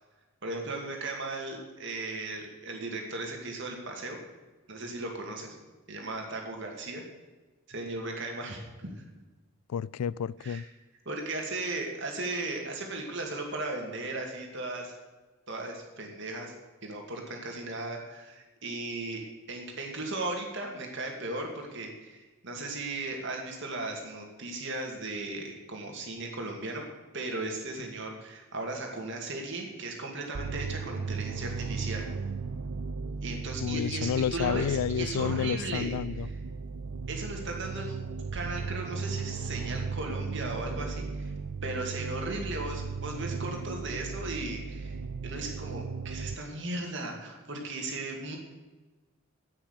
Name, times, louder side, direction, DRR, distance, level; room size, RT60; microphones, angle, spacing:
voice 1, 0.4-4.2 4.7-5.6 5.9-7.0 7.7-9.0 10.4-10.6 11.1-14.9 15.5-16.5 16.8-26.8 27.1-32.0 33.2-35.9 37.1-38.0 38.3-41.3 41.6-45.0 45.2-48.4, right 2 dB, 55° right, 1 dB, 2.5 m, -36 dB
voice 2, 9.7-10.6 33.6-36.3, left 8 dB, 85° left, 21 dB, 0.3 m, -30 dB
sound 1, 30.3-46.4, right 4 dB, 80° right, 0.5 m, -36 dB
9.8 x 8.9 x 8.2 m, 1.2 s
head